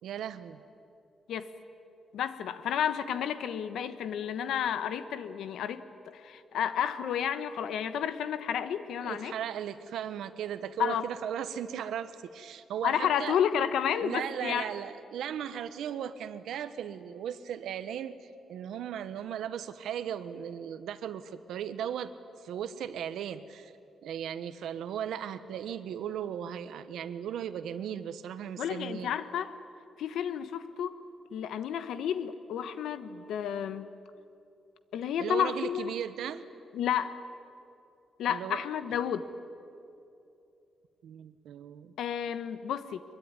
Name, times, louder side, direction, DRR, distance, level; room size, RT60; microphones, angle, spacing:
voice 1, 0.0-0.6 9.0-13.4 14.0-22.1 22.4-23.7 24.0-29.1 35.2-36.4 38.3-38.6 41.0-41.9, right 9 dB, 85° right, 12 dB, 1.2 m, -37 dB
voice 2, 2.1-5.8 6.1-9.3 10.8-11.1 12.8-14.7 28.6-29.5 30.0-30.9 31.3-33.9 34.9-35.9 36.7-37.2 38.2-39.3 42.0-43.0, left 9 dB, 85° left, 12 dB, 1.2 m, -31 dB
24.0 x 22.5 x 9.7 m, 2.7 s
wide cardioid pair, 175°, 0 cm